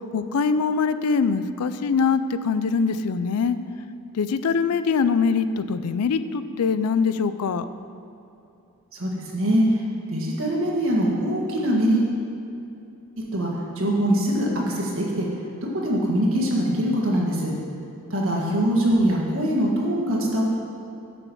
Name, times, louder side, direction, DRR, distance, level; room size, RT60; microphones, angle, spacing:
voice 1, 0.1-3.6 4.1-7.7 18.4-18.6, left 5 dB, 85° left, 12 dB, 0.4 m, -23 dB
voice 2, 8.9-9.8 10.1-12.1 13.3-13.5 13.7-15.3 15.8-17.5 18.1-20.5, equal, 65° right, -3 dB, 1.7 m, -22 dB
6.8 x 6.1 x 7.1 m, 2.7 s
head